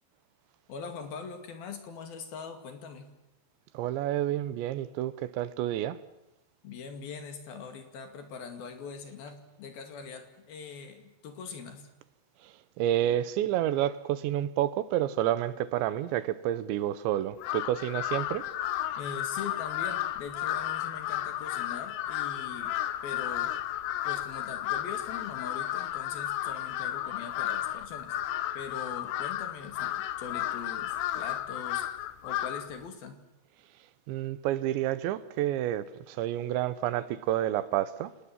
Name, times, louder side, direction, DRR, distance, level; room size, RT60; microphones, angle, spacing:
voice 1, 0.7-3.1 6.6-11.9 19.0-22.8 23.0-23.5 24.0-28.2 28.5-31.8 32.2-33.2, left 6 dB, 60° left, 3.9 m, -42 dB
voice 2, 3.7-6.0 12.4-18.5 34.1-38.1, right 12 dB, 85° right, 3.3 m, -29 dB
Crow, 17.4-32.8, left 13 dB, 85° left, 3.4 m, -33 dB
29.5 x 19.5 x 7.5 m
omnidirectional pair, 5.1 m